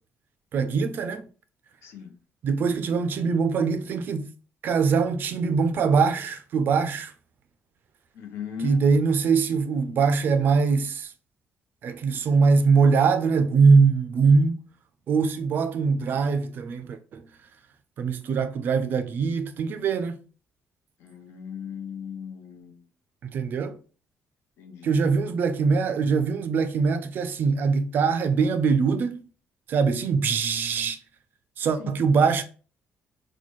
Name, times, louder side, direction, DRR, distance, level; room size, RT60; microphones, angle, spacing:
voice 1, 0.5-1.2 2.4-4.3 4.6-7.1 8.6-11.1 11.8-14.6 15.1-17.2 18.0-20.2 23.3-23.8 24.8-29.2 29.7-31.0 31.6-32.4, right 5 dB, 50° right, 0.4 m, -22 dB
voice 2, 1.8-2.1 8.1-8.8 21.0-22.8 24.6-25.2 31.8-32.0, left 7 dB, 80° left, 0.8 m, -38 dB
4.0 x 2.2 x 3.1 m
cardioid pair, 165°, 4 cm